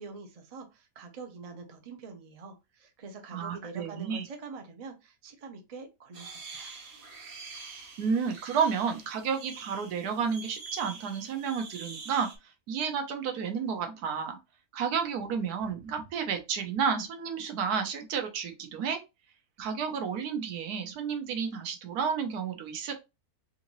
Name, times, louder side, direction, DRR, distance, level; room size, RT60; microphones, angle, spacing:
voice 1, 0.0-6.7, right 3 dB, 45° right, 5 dB, 0.4 m, -45 dB
voice 2, 3.3-4.2 8.0-12.3 12.7-14.4 14.7-19.0 19.6-22.9, right 6 dB, 80° right, 5 dB, 1.3 m, -31 dB
sound 1, 6.1-12.4, right 4 dB, 65° right, 1.4 m, -45 dB
3.7 x 2.6 x 2.9 m, 0.25 s
omnidirectional pair, 1.6 m